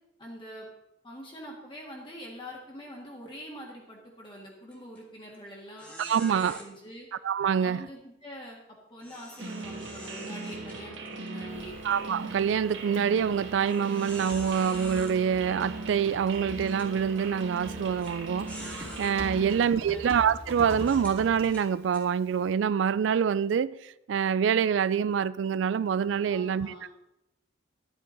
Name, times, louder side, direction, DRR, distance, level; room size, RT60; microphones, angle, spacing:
voice 1, 0.2-0.7 1.0-7.1 7.6-8.6 8.9-11.7 19.4-20.1 26.3-26.9, equal, 25° left, 1.6 m, -44 dB
sound 1, 4.7-5.0 5.3-5.4 5.8-6.6 9.0-11.3 11.8-11.9 12.6-12.7 13.7-15.1 16.0-16.1 16.6-16.9 18.0-18.1 18.5-19.1 19.8-20.0 20.8-22.0, equal, 10° left, 1.7 m, -45 dB
voice 2, 6.0-6.6 7.2-7.8 11.8-23.8 24.1-26.7, right 7 dB, 70° right, 0.3 m, -26 dB
sound 2, 9.4-19.6, right 3 dB, 90° right, 1.5 m, -39 dB
Typing, 11.5-22.5, right 1 dB, 35° right, 2.0 m, -45 dB
11.0 x 8.4 x 3.9 m
head